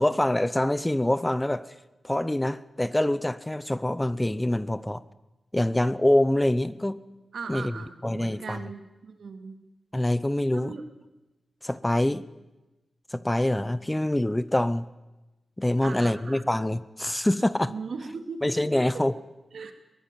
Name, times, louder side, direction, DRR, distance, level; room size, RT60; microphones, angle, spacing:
voice 1, 0.0-1.7 2.0-5.0 5.5-7.0 7.5-7.7 8.0-8.6 9.9-10.8 11.6-12.3 13.1-14.9 15.6-17.7 18.4-19.1, left 1 dB, 10° left, 16 dB, 0.8 m, -25 dB
voice 2, 7.3-9.6 10.5-10.8 15.8-16.5 17.6-18.4 18.7-19.2 19.5-19.7, right 5 dB, 75° right, 7 dB, 2.6 m, -39 dB
22.0 x 18.5 x 9.3 m, 1.1 s
wide cardioid pair, 90°, 0 cm